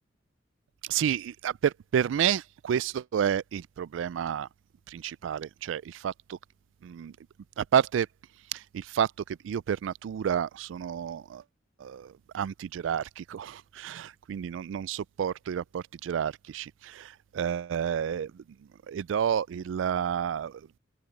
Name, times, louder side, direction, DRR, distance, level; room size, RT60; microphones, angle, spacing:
voice 1, 0.8-4.5 4.9-6.4 6.8-7.1 7.6-8.1 8.5-11.4 11.8-18.4 18.9-20.6, right 8 dB, 75° right, 0.3 m, -30 dB
head